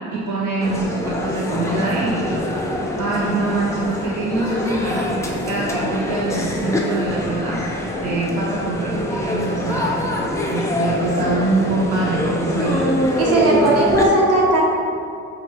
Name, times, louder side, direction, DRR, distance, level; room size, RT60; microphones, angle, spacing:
voice 1, 0.1-2.3 3.0-7.6 8.0-10.0 10.5-12.9, right 2 dB, 75° right, -5 dB, 0.6 m, -24 dB
sound 1, 0.6-14.1, left 1 dB, 10° left, 0.4 m, -24 dB
voice 2, 13.2-14.6, right 2 dB, 55° right, -3 dB, 1.0 m, -16 dB
5.8 x 2.2 x 2.9 m, 2.4 s
cardioid pair, 90°, 30 cm